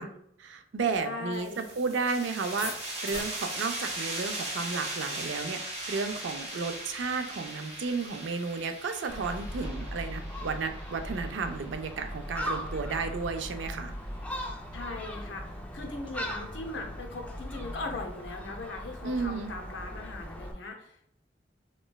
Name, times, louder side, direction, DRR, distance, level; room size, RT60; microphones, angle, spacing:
voice 1, 0.4-13.9 19.0-19.5, right 4 dB, 75° right, 7 dB, 0.4 m, -33 dB
voice 2, 1.0-1.7 14.7-21.1, left 3 dB, 90° left, 3 dB, 0.6 m, -39 dB
sound 1, 1.3-12.7, right 1 dB, 40° right, 0.9 m, -39 dB
sound 2, 2.6-9.7, left 2 dB, 45° left, 1.1 m, -48 dB
Gull seagull, 9.1-20.5, equal, 10° left, 0.4 m, -39 dB
3.2 x 3.0 x 2.2 m, 0.72 s
head